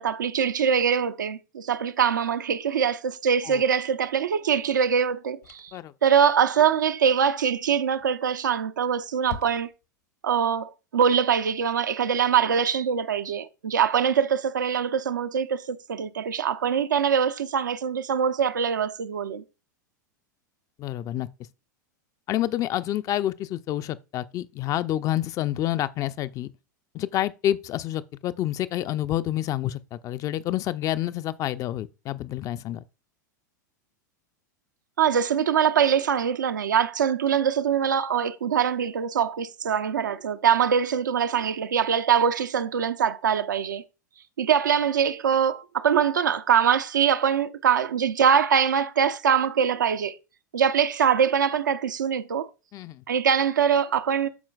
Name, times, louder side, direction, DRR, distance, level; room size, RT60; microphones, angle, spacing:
voice 1, 0.0-5.7 6.0-9.7 10.2-19.4 35.0-43.8 44.4-50.2 50.5-52.5 53.1-54.3, right 7 dB, 75° right, 0.5 m, -23 dB
sound 1, 4.1-4.3 5.4-5.9 8.0-8.5 8.7-8.8 9.2-10.0, left 8 dB, 65° left, 1.0 m, -42 dB
voice 2, 20.8-21.3 22.3-26.5 26.9-32.8 52.7-53.0, left 13 dB, 35° left, 0.4 m, -28 dB
13.0 x 4.4 x 2.3 m
figure-of-eight pair, 90°, 10 cm